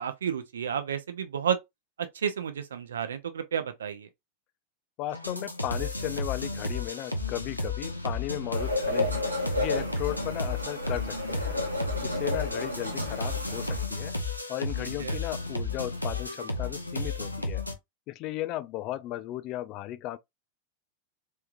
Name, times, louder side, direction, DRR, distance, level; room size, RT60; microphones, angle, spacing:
voice 1, 0.0-1.6 2.0-4.1 14.8-15.2, right 8 dB, 65° right, 0.6 m, -31 dB
voice 2, 5.0-11.6 12.0-14.2 14.5-17.6 18.1-20.2, left 15 dB, 40° left, 0.3 m, -36 dB
sound 1, 5.1-17.7, left 2 dB, 85° left, 0.6 m, -33 dB
sound 2, 8.5-13.9, left 1 dB, 90° right, 1.0 m, -32 dB
3.4 x 3.2 x 2.6 m
figure-of-eight pair, 90°, 0 cm